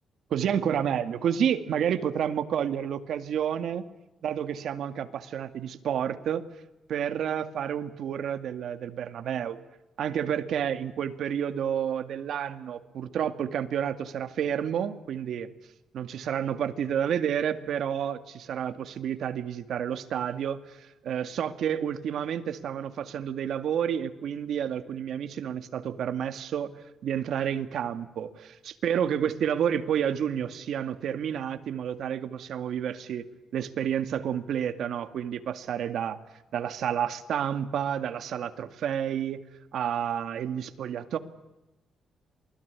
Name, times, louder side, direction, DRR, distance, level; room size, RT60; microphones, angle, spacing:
voice 1, 0.3-3.8 4.2-6.5 6.9-9.6 10.0-15.5 15.9-26.7 27.0-33.3 33.5-36.2 36.5-39.4 39.7-41.2, right 9 dB, 65° right, 10 dB, 2.1 m, -30 dB
28.0 x 21.0 x 9.7 m, 0.98 s
cardioid pair, 145°, 0 cm